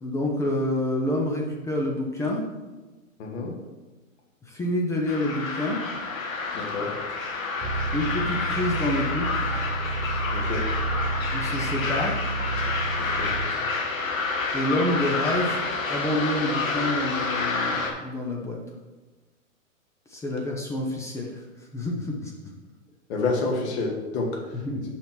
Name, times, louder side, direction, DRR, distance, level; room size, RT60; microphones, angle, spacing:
voice 1, 0.0-2.4 4.4-5.8 7.9-9.4 11.3-12.2 14.5-15.6 15.9-18.6 20.1-21.4 21.7-22.3 24.6-24.8, left 1 dB, 5° left, -1 dB, 0.5 m, -27 dB
voice 2, 3.2-3.5 6.5-6.9 10.3-10.7 13.0-13.3 23.1-24.6, left 3 dB, 55° left, 0 dB, 2.1 m, -29 dB
sound 1, 5.1-17.9, left 4 dB, 75° left, 1.4 m, -29 dB
sound 2, 7.6-13.5, right 3 dB, 20° right, 0.8 m, -30 dB
5.6 x 4.6 x 5.9 m, 1.2 s
hypercardioid pair, 125°, 40 cm